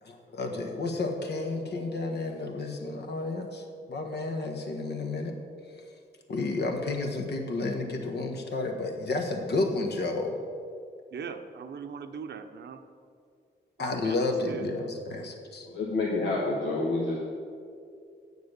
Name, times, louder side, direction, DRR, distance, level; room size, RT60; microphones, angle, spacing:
voice 1, 0.0-5.4 6.3-10.4 13.8-15.7, left 3 dB, 60° left, 3 dB, 1.4 m, -31 dB
voice 2, 11.1-12.8 13.8-14.2 14.5-14.7, right 6 dB, 65° right, 8 dB, 0.7 m, -40 dB
voice 3, 15.7-17.2, left 2 dB, 80° left, -4 dB, 1.4 m, -28 dB
8.4 x 6.8 x 6.7 m, 2.4 s
cardioid pair, 65°, 19 cm